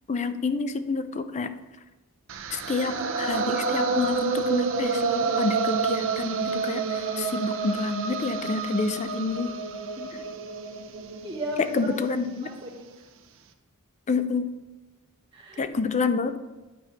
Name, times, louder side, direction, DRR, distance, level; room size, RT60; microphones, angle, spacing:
voice 1, 0.1-1.5 2.5-9.5 11.7-12.5 14.1-14.5 15.6-16.4, left 4 dB, 30° left, 10 dB, 0.5 m, -28 dB
sound 1, 2.3-12.4, right 4 dB, 60° right, 0.7 m, -29 dB
voice 2, 11.2-13.0 15.3-15.7, equal, 25° right, -6 dB, 2.2 m, -36 dB
10.0 x 4.2 x 4.5 m, 1.1 s
head